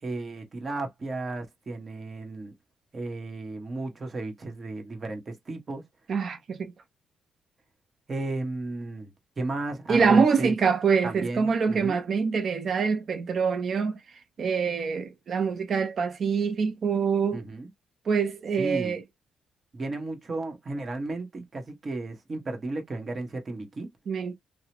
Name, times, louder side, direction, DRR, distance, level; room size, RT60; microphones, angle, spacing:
voice 1, 0.0-2.5 2.9-5.8 8.1-10.5 11.0-12.0 17.3-17.7 18.6-19.0 19.7-23.9, right 2 dB, 35° right, 1.1 m, -34 dB
voice 2, 6.1-6.7 9.9-14.0 14.4-17.4 18.1-19.0 24.1-24.3, right 5 dB, 50° right, 0.6 m, -25 dB
2.8 x 2.0 x 2.9 m
cardioid pair, 90°, 0 cm